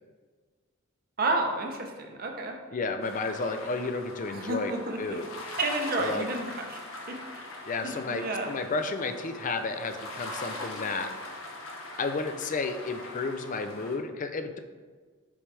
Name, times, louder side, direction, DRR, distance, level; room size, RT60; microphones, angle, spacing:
voice 1, 1.2-2.5 4.5-5.2 5.6-6.4 6.7-6.8 7.1-7.5 7.8-8.5, right 2 dB, 45° right, 3 dB, 0.8 m, -31 dB
voice 2, 2.7-5.3 6.0-6.3 7.6-11.1 12.0-14.6, left 3 dB, 40° left, 8 dB, 0.5 m, -32 dB
sound 1, 3.0-14.0, left 2 dB, 70° left, 1.0 m, -41 dB
7.1 x 4.7 x 3.4 m, 1.5 s
head